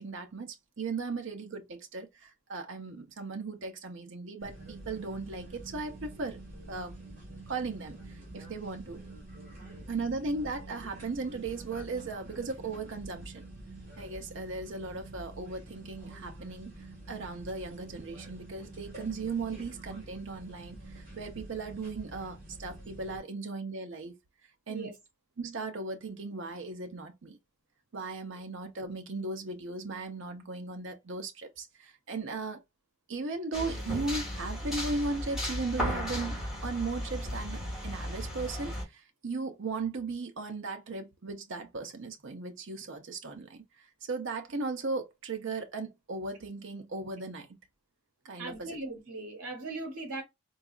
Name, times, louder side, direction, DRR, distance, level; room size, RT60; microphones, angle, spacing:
voice 1, 0.0-6.4 6.7-7.0 7.5-9.0 9.9-13.4 14.0-24.2 24.7-24.9 25.4-27.4 27.9-32.6 33.1-47.6 48.2-48.8, right 3 dB, 55° right, 0.6 m, -37 dB
sound 1, 4.4-23.2, right 2 dB, 35° right, 1.6 m, -47 dB
sound 2, 33.5-38.8, equal, ahead, 1.7 m, -35 dB
voice 2, 48.4-50.2, right 2 dB, 80° right, 0.9 m, -39 dB
3.9 x 2.3 x 2.3 m
head